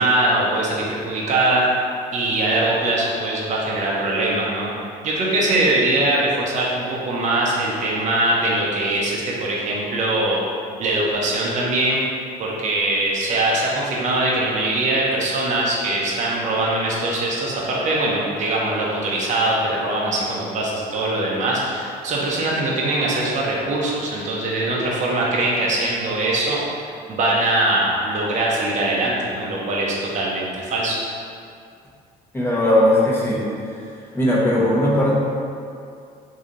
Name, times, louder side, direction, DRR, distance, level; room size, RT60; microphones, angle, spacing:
voice 1, 0.0-1.6 2.1-4.7 5.0-10.4 10.8-12.0 12.4-26.6 27.1-31.0, right 2 dB, 45° right, -4 dB, 0.7 m, -22 dB
voice 2, 32.3-33.4 34.1-35.1, left 1 dB, 15° left, -6 dB, 0.9 m, -18 dB
3.2 x 2.7 x 3.8 m, 2.4 s
cardioid pair, 110°, 17 cm